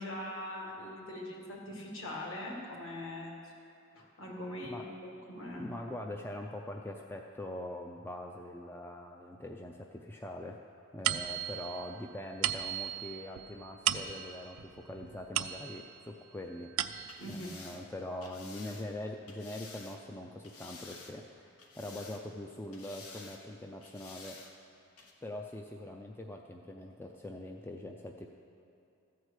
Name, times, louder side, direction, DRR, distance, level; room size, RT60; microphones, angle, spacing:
voice 1, 0.0-3.5 3.9-5.7 17.2-17.7, left 1 dB, 60° left, -1 dB, 1.9 m, -42 dB
voice 2, 5.6-10.6 10.9-16.7 17.3-24.4 25.2-28.3, left 1 dB, 10° left, 2 dB, 0.4 m, -43 dB
sound 1, 11.1-16.0 16.5-17.4, right 12 dB, 75° right, 0.4 m, -36 dB
sound 2, 17.0-20.0 20.4-21.3 21.6-22.4 22.7-23.4 23.8-24.5 25.0-25.1, left 4 dB, 85° left, 1.2 m, -51 dB
14.0 x 4.7 x 8.2 m, 2.7 s
head